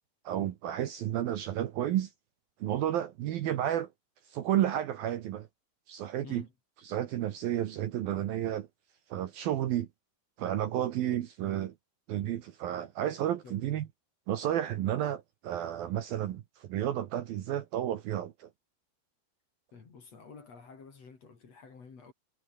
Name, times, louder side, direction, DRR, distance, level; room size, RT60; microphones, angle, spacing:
voice 1, 0.2-2.1 2.6-3.9 4.3-5.5 5.9-6.4 6.8-8.7 9.1-9.9 10.4-11.7 12.1-13.9 14.3-18.5, right 12 dB, 65° right, 2.7 m, -31 dB
voice 2, 19.7-22.1, left 5 dB, 40° left, 4.0 m, -50 dB
omnidirectional pair, 5.2 m